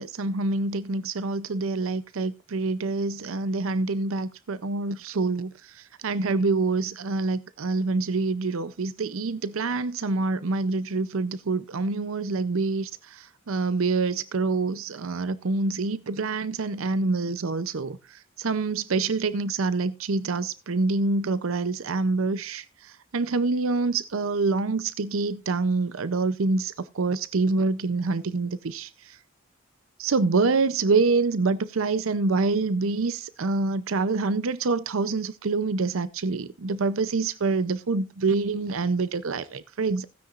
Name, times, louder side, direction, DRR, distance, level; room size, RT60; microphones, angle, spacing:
voice 1, 0.0-29.2 30.0-40.1, right 3 dB, 80° right, 0.6 m, -26 dB
16.0 x 9.8 x 2.5 m
head